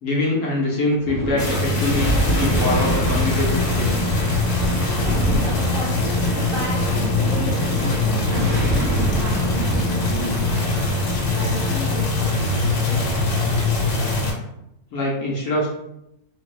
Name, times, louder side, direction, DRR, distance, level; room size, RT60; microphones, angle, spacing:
voice 1, 0.0-4.1 14.9-15.7, left 2 dB, 65° left, -4 dB, 1.0 m, -24 dB
Thunder, 1.0-11.9, right 1 dB, 40° right, 0.5 m, -27 dB
sound 1, 1.4-14.3, left 2 dB, 85° left, 1.2 m, -22 dB
voice 2, 5.0-10.6 10.9-13.9, equal, 70° right, -2 dB, 0.8 m, -35 dB
2.6 x 2.0 x 2.3 m, 0.82 s
omnidirectional pair, 1.6 m